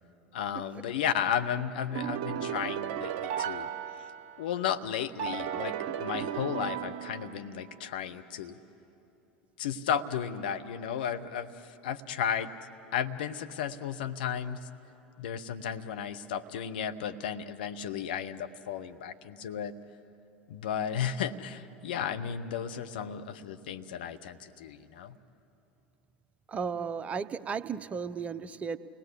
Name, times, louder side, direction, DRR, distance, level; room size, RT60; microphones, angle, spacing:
voice 1, 0.3-3.7 4.4-8.6 9.6-14.7 15.2-19.7 20.5-25.2, left 8 dB, 70° left, 8 dB, 1.1 m, -34 dB
sound 1, 1.9-4.6 5.2-7.7, right 9 dB, 55° right, 0.9 m, -35 dB
voice 2, 26.5-28.8, right 6 dB, 25° right, 12 dB, 0.9 m, -35 dB
29.5 x 19.0 x 8.3 m, 2.8 s
figure-of-eight pair, 75°, 5 cm